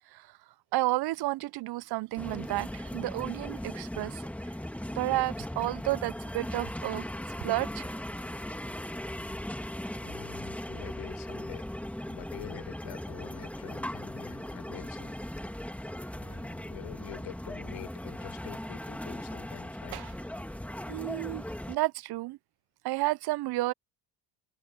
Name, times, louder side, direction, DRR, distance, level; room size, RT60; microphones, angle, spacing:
voice 1, 0.7-4.3 4.9-7.1 7.4-7.9 19.9-20.1 20.9-22.4 22.8-23.7, right 18 dB, 55° right, 0.6 m, -31 dB
sound 1, 2.2-21.8, left 1 dB, 5° left, 2.3 m, -38 dB
voice 2, 9.0-9.6 10.0-11.7 12.1-15.2 16.2-20.0, left 18 dB, 70° left, 4.3 m, -47 dB
supercardioid pair, 80°, 48 cm